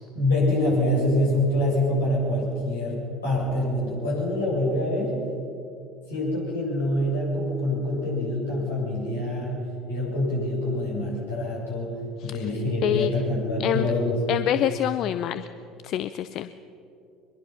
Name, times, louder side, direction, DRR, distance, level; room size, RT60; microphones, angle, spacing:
voice 1, 0.1-5.1 6.1-9.6 9.9-14.2, left 1 dB, 75° left, -4 dB, 7.5 m, -25 dB
voice 2, 13.6-13.9 14.3-15.5 15.8-16.5, left 11 dB, 50° left, 13 dB, 0.6 m, -26 dB
23.5 x 22.5 x 5.8 m, 2.7 s
figure-of-eight pair, 65°, 0 cm